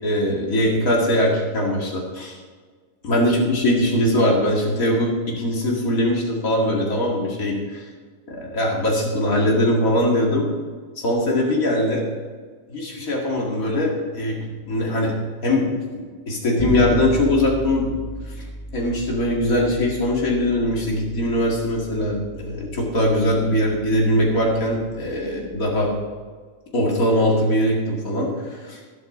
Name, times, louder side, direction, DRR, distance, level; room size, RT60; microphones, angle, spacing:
voice 1, 0.0-2.4 3.0-7.8 8.3-10.5 11.0-12.1 12.7-14.4 14.6-15.1 15.4-15.7 15.9-17.9 18.7-25.9 26.7-28.8, left 1 dB, 85° left, -2 dB, 2.6 m, -21 dB
Bass guitar, 16.6-26.3, right 2 dB, 20° left, 1.6 m, -35 dB
12.5 x 12.0 x 3.8 m, 1.6 s
omnidirectional pair, 1.4 m